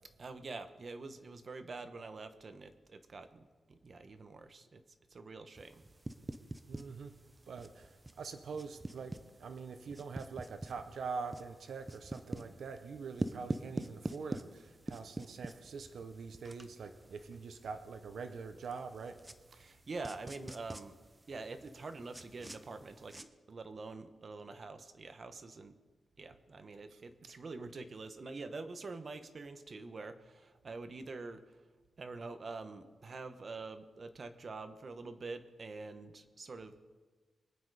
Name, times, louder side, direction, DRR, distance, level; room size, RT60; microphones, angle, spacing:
voice 1, 0.2-4.8 5.1-5.8 19.5-21.0 21.3-25.8 26.2-31.6 32.0-36.8, right 3 dB, 40° right, 9 dB, 1.1 m, -46 dB
sound 1, 5.6-23.2, right 1 dB, 15° right, 0.6 m, -46 dB
voice 2, 6.7-7.1 7.5-19.2 19.5-19.6 27.3-27.4, right 5 dB, 70° right, 8 dB, 0.9 m, -44 dB
24.0 x 9.0 x 4.9 m, 1.3 s
wide cardioid pair, 140°, 0 cm